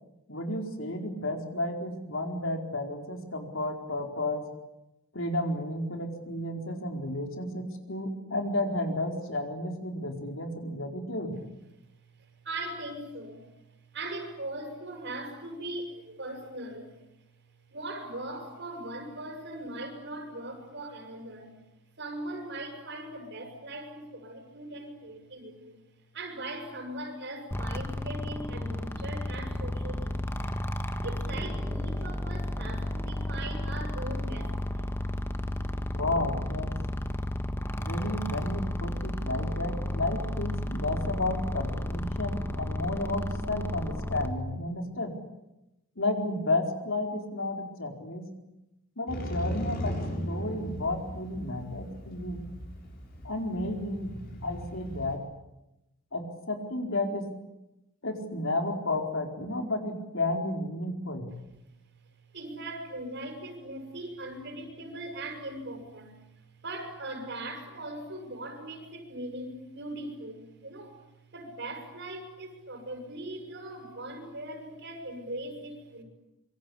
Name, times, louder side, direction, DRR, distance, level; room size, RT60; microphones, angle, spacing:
voice 1, 0.3-4.5 5.1-11.4 35.9-36.7 37.8-45.1 46.0-48.3 49.0-50.0 50.2-52.5 53.2-54.2 54.4-55.2 56.1-57.3 58.0-61.3, left 2 dB, 70° left, 3 dB, 4.5 m, -32 dB
voice 2, 12.2-13.5 13.9-17.0 17.7-21.6 22.0-25.8 26.1-30.6 31.0-34.9 62.3-71.0 71.3-76.0, right 1 dB, 55° right, 5 dB, 6.8 m, -40 dB
sound 1, 27.5-44.3, left 1 dB, 10° left, 1.5 m, -33 dB
Motorcycle, 49.1-55.2, equal, 45° left, 6.8 m, -37 dB
26.0 x 24.5 x 8.6 m, 0.93 s
head